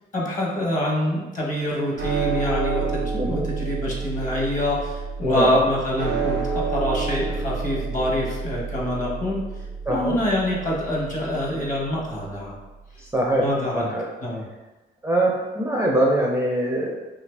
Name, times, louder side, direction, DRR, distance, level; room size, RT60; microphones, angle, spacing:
voice 1, 0.1-9.4 9.9-12.6 13.4-13.9 14.2-14.4, left 1 dB, 40° left, -3 dB, 1.0 m, -25 dB
sound 1, 2.0-12.4, right 5 dB, 75° right, 0.6 m, -29 dB
voice 2, 5.2-5.6 9.9-10.2 13.0-13.5 13.7-14.0 15.0-17.0, right 1 dB, 10° right, -3 dB, 0.5 m, -23 dB
2.7 x 2.5 x 3.2 m, 1.1 s
cardioid pair, 90°, 20 cm